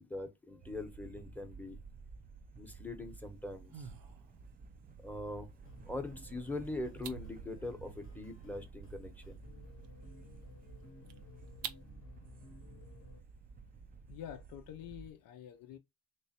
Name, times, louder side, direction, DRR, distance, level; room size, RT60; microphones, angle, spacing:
voice 1, 0.0-1.8 2.6-3.9 5.0-5.5 5.9-9.4, left 2 dB, 5° left, 0.8 m, -42 dB
sound 1, 0.6-15.1, right 5 dB, 25° right, 0.4 m, -53 dB
sound 2, 3.1-11.9, right 8 dB, 70° right, 0.6 m, -52 dB
sound 3, 5.6-13.2, left 3 dB, 35° left, 0.8 m, -57 dB
voice 2, 14.1-15.8, left 10 dB, 70° left, 0.6 m, -47 dB
3.2 x 3.0 x 2.8 m
cardioid pair, 100°, 36 cm